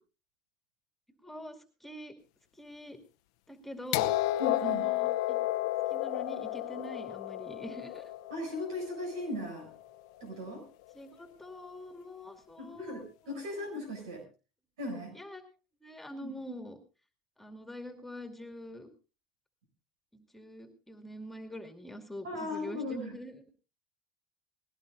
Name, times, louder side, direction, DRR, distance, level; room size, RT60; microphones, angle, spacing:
voice 1, 1.1-2.1 2.5-3.0 3.5-4.1 4.6-5.4 5.9-8.1 10.9-13.4 14.9-15.4 15.8-16.8 17.4-18.9 20.1-23.3, equal, 5° left, 4 dB, 2.4 m, -45 dB
sound 1, 3.9-9.8 10.9-11.0, left 16 dB, 75° left, 0.7 m, -32 dB
voice 2, 4.4-4.9 8.3-9.7 10.2-10.6 12.6-14.2 14.8-15.2 16.2-16.3 22.2-23.1, left 1 dB, 85° right, 4 dB, 7.1 m, -37 dB
20.0 x 17.0 x 2.6 m, 0.33 s
hypercardioid pair, 90°, 3 cm